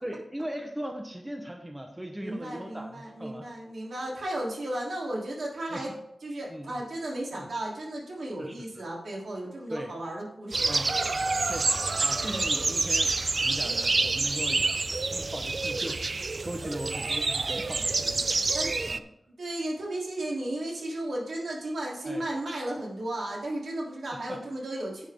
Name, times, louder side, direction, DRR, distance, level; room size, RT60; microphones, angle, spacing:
voice 1, 0.0-3.5 5.7-6.0 6.5-6.8 7.3-7.5 8.4-8.9 9.7-9.9 10.7-11.0 11.5-18.6 18.9-19.0 22.0-22.2 24.1-24.4, equal, 10° right, 4 dB, 1.0 m, -39 dB
voice 2, 2.2-5.9 6.2-10.8 18.5-18.7 19.4-25.1, right 1 dB, 80° right, -3 dB, 3.0 m, -34 dB
sound 1, 10.5-19.0, right 3 dB, 45° right, 0.4 m, -27 dB
10.0 x 8.9 x 3.6 m, 0.79 s
wide cardioid pair, 110°, 0 cm